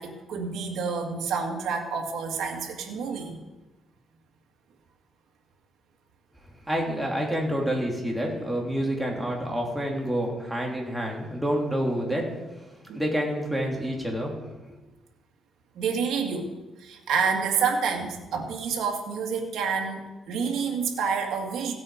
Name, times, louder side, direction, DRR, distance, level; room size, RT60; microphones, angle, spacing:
voice 1, 0.0-3.4 12.9-13.0 15.8-16.5 16.8-21.7, right 5 dB, 75° right, 1 dB, 2.0 m, -28 dB
voice 2, 6.7-12.3 12.9-14.3, equal, 5° right, -2 dB, 3.5 m, -28 dB
16.5 x 8.4 x 5.1 m, 1.1 s
cardioid pair, 90°, 0 cm